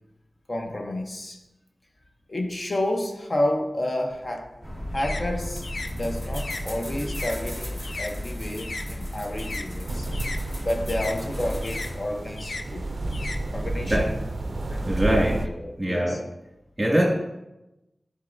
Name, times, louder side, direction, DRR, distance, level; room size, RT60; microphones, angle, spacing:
voice 1, 0.5-1.4 2.3-4.5 4.9-5.6 5.9-10.1 10.6-12.8 13.5-14.1 14.7-15.2 15.6-16.2, left 1 dB, 45° left, 2 dB, 0.8 m, -30 dB
sound 1, 4.1-8.9 9.2-14.0, left 3 dB, 75° left, 0.4 m, -38 dB
sound 2, 4.6-12.0, equal, 25° left, 1.3 m, -33 dB
sound 3, 9.9-15.5, right 2 dB, 55° right, 0.4 m, -31 dB
voice 2, 14.8-15.4 15.8-16.2 16.8-17.0, equal, 15° right, -3 dB, 2.0 m, -23 dB
10.0 x 4.0 x 2.6 m, 0.95 s
wide cardioid pair, 90°, 0 cm